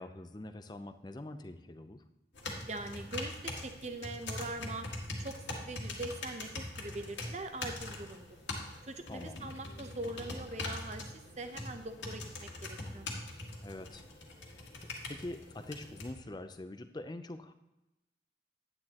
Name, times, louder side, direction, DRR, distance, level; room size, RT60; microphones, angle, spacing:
voice 1, 0.0-2.0 9.1-9.5 13.6-14.0 14.5-17.5, left 1 dB, 20° left, 9 dB, 0.5 m, -45 dB
sound 1, 2.4-16.1, left 2 dB, 80° left, 1.9 m, -42 dB
voice 2, 2.7-4.9 5.2-8.3 8.9-13.1, right 2 dB, 35° right, 7 dB, 0.8 m, -42 dB
9.8 x 9.7 x 2.9 m, 0.97 s
head